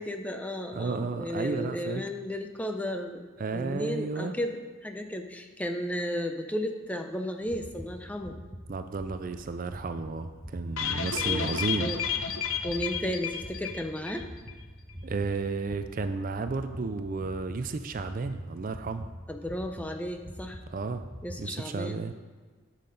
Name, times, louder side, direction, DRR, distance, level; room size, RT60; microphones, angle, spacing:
voice 1, 0.0-3.2 3.5-8.4 11.2-11.5 11.8-12.0 12.6-14.2 19.3-20.6 21.2-22.0, equal, 5° left, 5 dB, 0.6 m, -34 dB
voice 2, 0.7-2.0 3.4-4.3 8.7-11.9 15.0-19.1 20.7-21.0 21.4-22.1, right 4 dB, 40° right, 9 dB, 0.4 m, -32 dB
sound 1, 7.4-21.4, equal, 15° right, 1.0 m, -45 dB
sound 2, 10.8-14.2 14.5-14.6 14.9-15.0, left 7 dB, 80° left, 0.7 m, -31 dB
10.5 x 7.5 x 3.9 m, 1.4 s
head